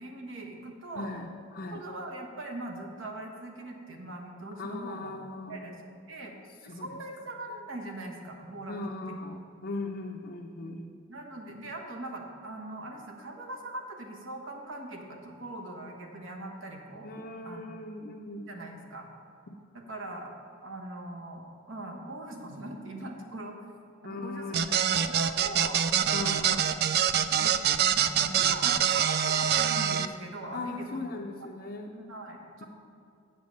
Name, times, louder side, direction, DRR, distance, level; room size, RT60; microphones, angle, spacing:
voice 1, 0.0-1.1 1.7-5.1 5.5-5.8 6.1-6.3 6.6-8.8 9.1-9.2 10.6-10.8 11.1-17.1 17.4-17.6 18.5-19.1 19.7-20.3 20.6-23.6 24.0-24.6 24.9-25.8 26.2-26.7 27.4-27.5 28.1-31.1 31.9-32.6, right 2 dB, 65° right, 1 dB, 1.2 m, -41 dB
voice 2, 0.9-1.8 4.6-5.8 6.6-7.0 8.7-10.9 17.0-18.6 19.5-19.6 24.0-24.9 26.1-26.9 30.5-32.0, left 2 dB, 50° left, -1 dB, 0.5 m, -39 dB
sound 1, 24.5-30.1, right 9 dB, 50° right, 0.3 m, -25 dB
8.0 x 7.3 x 5.3 m, 2.6 s
head